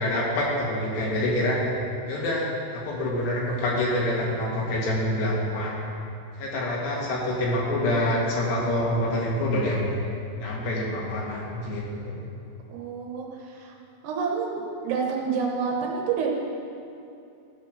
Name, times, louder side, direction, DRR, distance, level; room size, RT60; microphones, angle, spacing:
voice 1, 0.0-1.6 2.1-5.9 6.4-9.9 10.4-12.2, left 1 dB, 70° left, -4 dB, 3.7 m, -26 dB
voice 2, 12.7-13.8 14.0-16.3, right 5 dB, 75° right, -1 dB, 2.8 m, -28 dB
14.5 x 5.2 x 6.4 m, 2.6 s
omnidirectional pair, 5.2 m